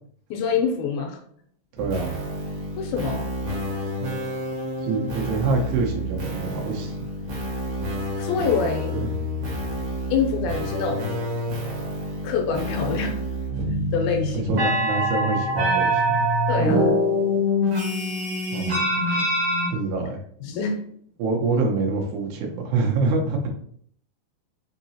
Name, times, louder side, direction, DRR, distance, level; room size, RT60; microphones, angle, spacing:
voice 1, 0.3-1.2 2.8-3.3 8.2-8.9 10.1-11.1 12.2-13.1 13.9-14.4 16.5-16.9 20.4-20.8, left 5 dB, 80° left, 3 dB, 2.4 m, -25 dB
sound 1, 1.8-19.7, equal, 70° right, 1.2 m, -26 dB
voice 2, 1.8-2.2 4.8-7.1 9.0-9.1 14.3-16.3 18.5-18.8 19.7-20.2 21.2-23.5, right 4 dB, 90° right, 0 dB, 2.9 m, -26 dB
6.5 x 2.8 x 2.7 m, 0.62 s
omnidirectional pair, 4.5 m